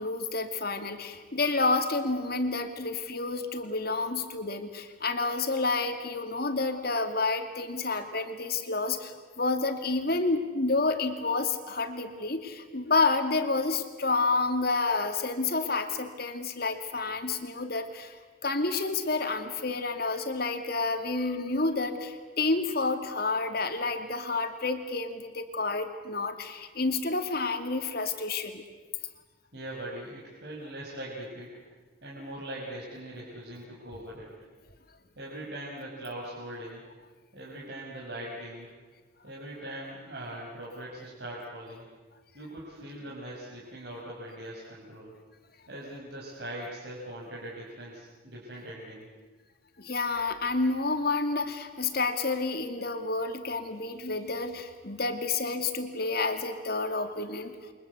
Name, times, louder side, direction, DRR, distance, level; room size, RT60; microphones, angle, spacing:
voice 1, 0.0-28.6 49.8-57.6, left 3 dB, 50° left, 7 dB, 2.5 m, -29 dB
voice 2, 29.5-31.5 32.0-34.3 35.2-36.8 37.3-38.8 39.2-41.8 42.3-45.1 45.7-49.1, right 1 dB, 55° right, -5 dB, 5.3 m, -41 dB
29.0 x 24.0 x 8.2 m, 1.4 s
head